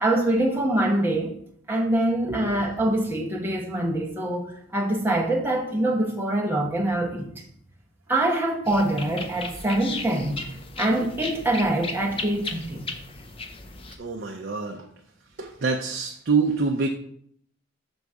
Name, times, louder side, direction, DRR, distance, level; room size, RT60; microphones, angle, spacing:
voice 1, 0.0-1.3 1.7-7.4 8.1-10.4 10.8-12.9, right 1 dB, 10° right, 0.9 m, -24 dB
sound 1, 8.7-14.0, left 3 dB, 25° left, 0.5 m, -36 dB
voice 2, 14.0-14.8 15.4-16.9, right 4 dB, 55° right, 0.5 m, -26 dB
6.1 x 4.0 x 4.8 m
head